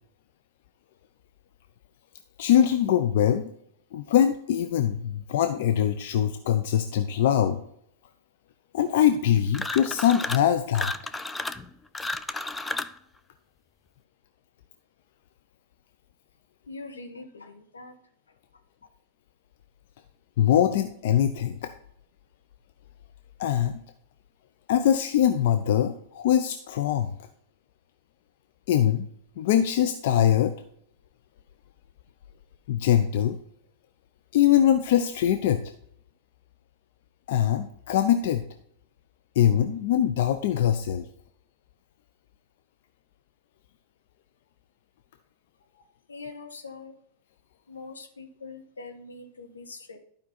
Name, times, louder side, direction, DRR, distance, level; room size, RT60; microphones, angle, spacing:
voice 1, 2.4-3.5 3.9-7.6 8.7-10.9 20.4-21.7 23.4-23.8 24.7-27.1 28.7-29.1 29.4-30.5 32.7-33.4 34.3-35.6 37.3-38.4 39.4-41.0, left 10 dB, 60° left, 8 dB, 0.6 m, -22 dB
sound 1, 9.5-10.5 10.7-13.0, left 2 dB, 10° left, 0.5 m, -32 dB
voice 2, 16.7-18.0 45.7-46.9 47.7-50.0, left 3 dB, 85° left, 5 dB, 1.3 m, -43 dB
11.5 x 5.2 x 4.3 m, 0.71 s
hypercardioid pair, 100°, 0 cm